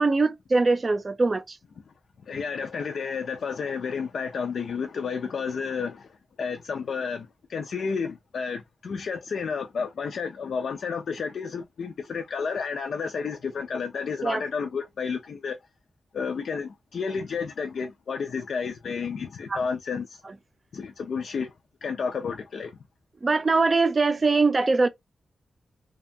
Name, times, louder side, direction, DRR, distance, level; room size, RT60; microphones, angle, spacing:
voice 1, 0.0-1.6 14.2-14.4 19.5-19.6 23.2-24.9, right 3 dB, 35° right, 0.4 m, -22 dB
voice 2, 2.3-15.6 16.1-20.2 20.7-21.5 21.8-22.7, left 5 dB, 75° left, 0.4 m, -31 dB
2.6 x 2.3 x 2.5 m
wide cardioid pair, 95°, 0 cm